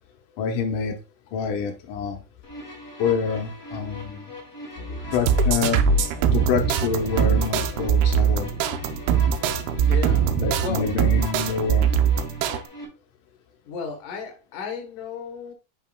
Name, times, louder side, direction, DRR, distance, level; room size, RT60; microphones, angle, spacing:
voice 1, 0.4-1.0 1.3-2.2 3.0-4.3 5.1-6.1 6.3-8.5 10.4-11.9, left 6 dB, 85° left, 1.8 m, -27 dB
sound 1, 2.4-12.8, left 2 dB, 35° left, 1.4 m, -40 dB
sound 2, 4.7-10.6, left 1 dB, 20° right, 3.5 m, -38 dB
sound 3, 5.1-12.6, right 7 dB, 85° right, 2.3 m, -21 dB
voice 2, 9.7-10.9 13.7-15.5, left 5 dB, 60° left, 2.4 m, -34 dB
7.7 x 5.8 x 2.3 m
omnidirectional pair, 5.0 m